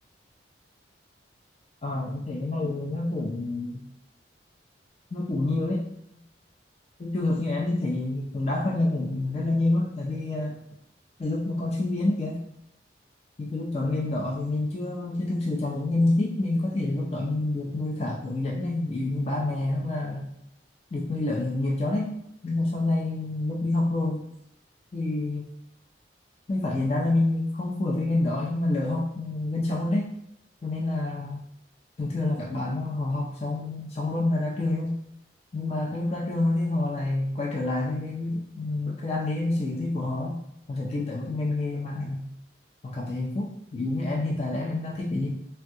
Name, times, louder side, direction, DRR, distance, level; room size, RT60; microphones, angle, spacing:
voice 1, 1.8-3.8 5.1-5.9 6.1-6.2 7.0-10.6 11.2-12.4 13.4-20.3 20.9-22.1 22.4-24.2 24.9-25.5 26.5-30.1 30.6-31.4 32.0-35.0 35.5-40.4 40.7-42.2 42.8-45.4, left 2 dB, 35° left, -2 dB, 0.4 m, -27 dB
3.5 x 2.2 x 2.7 m, 0.76 s
head